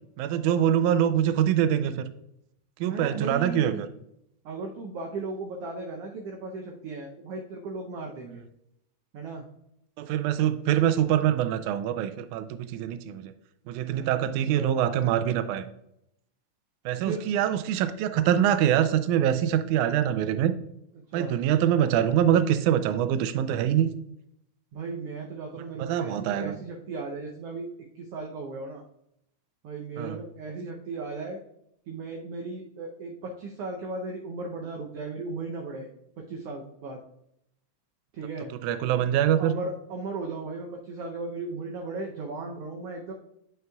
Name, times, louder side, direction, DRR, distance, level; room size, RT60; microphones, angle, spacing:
voice 1, 0.2-2.1 2.8-3.9 10.0-13.3 13.7-15.6 16.9-20.5 21.1-23.9 25.8-26.6 30.0-30.2 38.6-39.5, right 10 dB, 90° right, 10 dB, 2.0 m, -24 dB
voice 2, 2.8-3.9 4.4-8.4 9.1-9.4 14.5-14.7 17.0-17.2 21.1-21.4 24.7-27.7 27.9-28.8 29.6-31.4 31.9-35.9 36.2-37.0 38.1-38.5 39.4-43.1, right 3 dB, 70° right, 1 dB, 1.5 m, -36 dB
9.5 x 6.1 x 2.3 m, 0.78 s
omnidirectional pair, 3.4 m